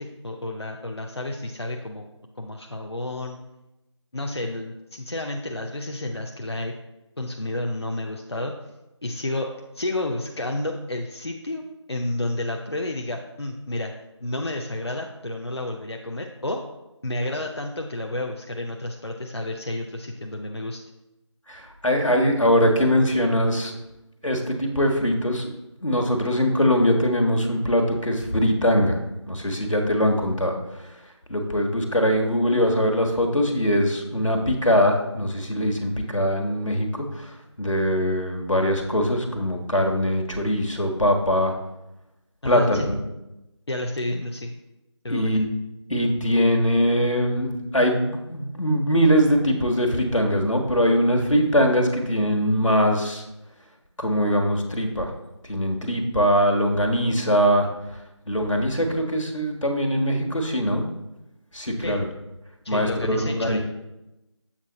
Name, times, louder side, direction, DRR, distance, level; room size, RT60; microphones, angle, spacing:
voice 1, 0.0-2.0 2.4-3.4 4.1-6.7 7.2-8.5 9.0-11.6 11.9-13.9 14.2-16.6 17.0-20.8 42.4-42.9 43.7-44.5 45.0-45.4 61.8-62.0 62.6-63.6, left 1 dB, 60° left, 2 dB, 0.6 m, -30 dB
voice 2, 21.5-23.8 24.2-25.5 25.8-29.0 29.3-30.6 31.3-37.2 37.6-41.5 42.4-43.0 45.1-45.5 45.9-53.2 54.0-55.1 55.5-57.7 58.3-60.8 61.5-62.0 62.7-63.6, equal, 85° left, 3 dB, 1.3 m, -22 dB
7.3 x 4.3 x 3.9 m, 0.95 s
figure-of-eight pair, 175°, 16 cm